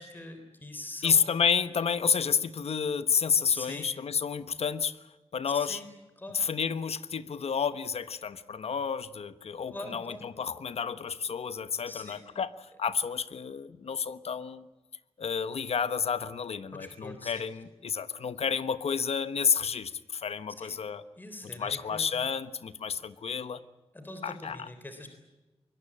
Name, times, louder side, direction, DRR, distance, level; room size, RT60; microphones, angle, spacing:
voice 1, 0.0-1.2 3.5-3.9 5.4-5.9 6.2-6.4 9.7-10.2 11.9-12.2 16.7-17.3 20.6-20.8 21.2-22.1 23.9-25.1, left 1 dB, 20° left, 6 dB, 3.6 m, -43 dB
voice 2, 1.0-5.0 5.3-5.8 6.3-14.7 15.2-21.0 21.6-23.6 24.2-24.7, left 6 dB, 75° left, 13 dB, 1.2 m, -30 dB
24.5 x 22.0 x 8.8 m, 1.1 s
wide cardioid pair, 135°, 11 cm